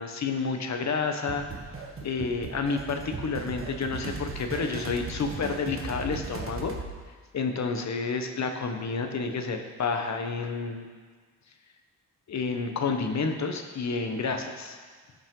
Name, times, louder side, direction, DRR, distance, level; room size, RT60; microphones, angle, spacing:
voice 1, 0.0-1.4 2.0-6.7 7.3-10.8 12.3-14.8, left 4 dB, 55° left, 5 dB, 1.1 m, -30 dB
sound 1, 1.3-6.9, right 4 dB, 40° right, 1.2 m, -38 dB
15.0 x 5.4 x 3.8 m, 1.5 s
cardioid pair, 90°, 33 cm